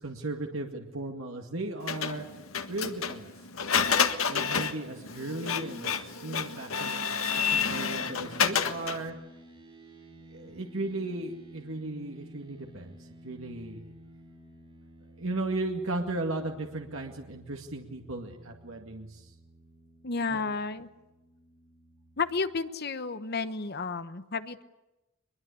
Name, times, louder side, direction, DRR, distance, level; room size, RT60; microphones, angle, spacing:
voice 1, 0.0-2.3 2.7-3.3 4.3-9.2 10.3-13.9 15.2-19.3 20.3-20.6, right 2 dB, 70° right, 2 dB, 2.1 m, -36 dB
Printer, 1.9-9.1, left 6 dB, 90° left, 1.6 m, -29 dB
sound 1, 7.4-22.4, right 1 dB, 25° right, 6.4 m, -53 dB
voice 2, 20.0-20.9 22.2-24.6, left 4 dB, 50° left, 12 dB, 1.1 m, -32 dB
23.0 x 22.0 x 8.4 m, 0.99 s
head